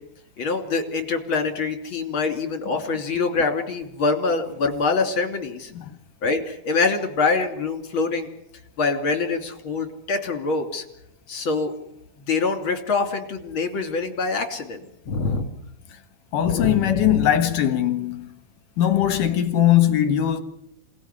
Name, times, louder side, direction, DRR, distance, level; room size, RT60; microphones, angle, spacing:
voice 1, 0.4-5.7 6.2-8.3 8.8-10.8 11.3-11.7 12.3-14.8 15.0-15.5 16.4-17.3, left 4 dB, 35° left, 3.4 m, -25 dB
voice 2, 16.3-18.3 18.8-20.4, left 11 dB, 65° left, 2.8 m, -20 dB
27.5 x 19.0 x 9.7 m
omnidirectional pair, 4.3 m